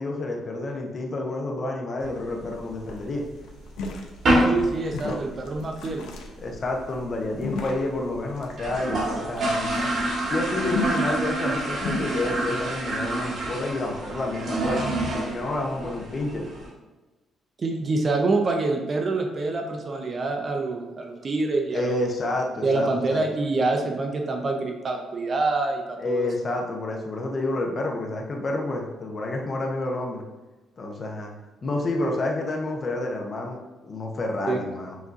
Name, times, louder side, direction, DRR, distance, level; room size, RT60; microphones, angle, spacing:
voice 1, 0.0-3.2 5.0-5.2 6.4-9.9 10.3-14.8 15.2-16.5 21.7-23.2 26.0-30.2 30.8-31.3 31.6-35.0, left 2 dB, 35° left, 1 dB, 0.6 m, -29 dB
sound 1, 2.0-3.1 3.5-3.6 3.8-4.0 4.2-4.7 4.9-5.0 5.3-5.4 5.7-6.2 6.5-6.6 6.8-6.9 7.1-7.2 7.7-7.8 8.1-8.2 8.5-16.7, right 1 dB, 55° right, 1.3 m, -27 dB
sound 2, 2.1-2.2 2.5-2.6 2.9-12.1, left 3 dB, 85° left, 0.6 m, -35 dB
voice 2, 4.5-6.0 17.6-22.0 22.6-26.3 34.5-34.6, right 3 dB, 35° right, 3 dB, 0.5 m, -26 dB
5.9 x 2.7 x 2.4 m, 1.2 s
cardioid pair, 125°, 0 cm